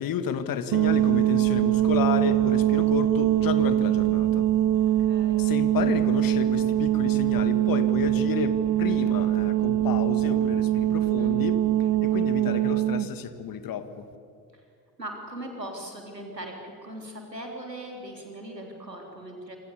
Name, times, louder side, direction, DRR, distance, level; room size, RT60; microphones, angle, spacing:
voice 1, 0.0-4.5 5.4-11.6 12.0-14.0, left 8 dB, 45° left, 11 dB, 2.2 m, -31 dB
sound 1, 0.7-13.1, right 13 dB, 40° right, 0.9 m, -23 dB
voice 2, 4.8-5.5 11.0-11.4 14.5-14.6 15.0-19.6, right 1 dB, 90° right, 2 dB, 3.6 m, -40 dB
28.0 x 26.0 x 7.1 m, 2.4 s
figure-of-eight pair, 55°, 48 cm